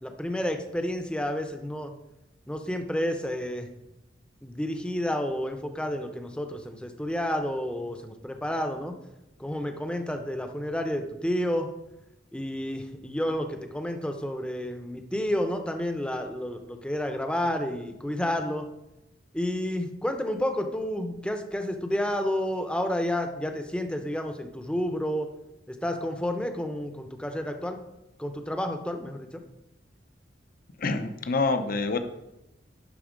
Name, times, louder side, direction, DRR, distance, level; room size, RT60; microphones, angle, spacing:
voice 1, 0.0-1.9 2.5-3.7 4.4-8.9 9.4-11.7 12.3-18.7 19.3-25.3 25.7-27.8 28.2-29.4, left 1 dB, 5° left, 5 dB, 0.7 m, -30 dB
voice 2, 30.8-32.0, left 3 dB, 50° left, 9 dB, 0.7 m, -26 dB
11.5 x 4.0 x 5.1 m, 0.91 s
head